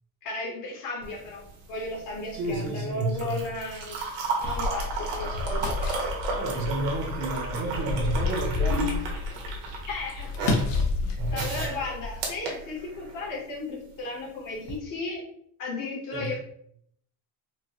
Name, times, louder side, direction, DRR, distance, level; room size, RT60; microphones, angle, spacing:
voice 1, 0.2-3.9 4.4-5.9 6.2-6.4 8.7-8.9 9.9-10.9 11.3-15.2 15.6-16.4, left 3 dB, 50° left, -2 dB, 1.3 m, -35 dB
sound 1, 1.0-13.3 14.6-14.8, right 4 dB, 75° right, 1.2 m, -34 dB
voice 2, 2.3-3.4 6.3-8.9 9.3-9.4 10.4-10.5 11.2-11.6 16.1-16.3, right 2 dB, 40° right, 3 dB, 0.7 m, -31 dB
sound 2, 4.4-12.2, left 3 dB, 80° left, 1.0 m, -30 dB
4.5 x 2.1 x 2.9 m, 0.67 s
cardioid pair, 165°, 42 cm